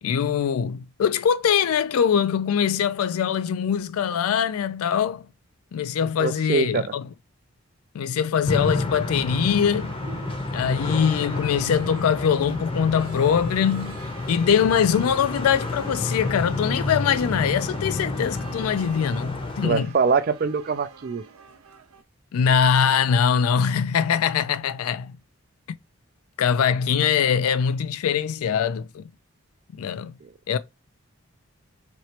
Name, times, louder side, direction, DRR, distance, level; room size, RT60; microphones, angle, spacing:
voice 1, 0.0-5.3 5.7-7.1 7.9-9.9 10.5-14.0 14.3-19.9 22.3-25.2 26.4-29.0 29.7-30.1 30.5-30.6, left 7 dB, 85° left, 0.3 m, -22 dB
voice 2, 6.2-6.9 19.6-21.2 30.2-30.3, right 5 dB, 45° right, 0.3 m, -24 dB
sound 1, 8.4-19.7, left 2 dB, 25° left, 0.6 m, -30 dB
sound 2, 9.8-22.0, right 5 dB, 80° right, 0.7 m, -45 dB
4.3 x 2.9 x 2.9 m
head